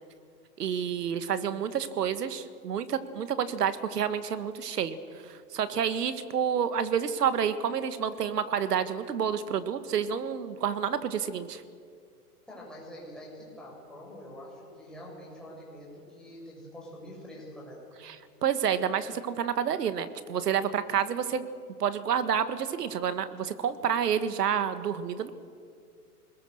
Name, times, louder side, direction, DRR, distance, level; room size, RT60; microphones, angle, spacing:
voice 1, 0.6-5.0 5.2-11.6 18.1-18.2 18.4-21.5 21.8-25.3, right 8 dB, 80° right, 11 dB, 1.7 m, -29 dB
voice 2, 12.5-17.8, equal, ahead, -5 dB, 7.0 m, -45 dB
26.5 x 21.0 x 6.6 m, 2.2 s
hypercardioid pair, 150°, 47 cm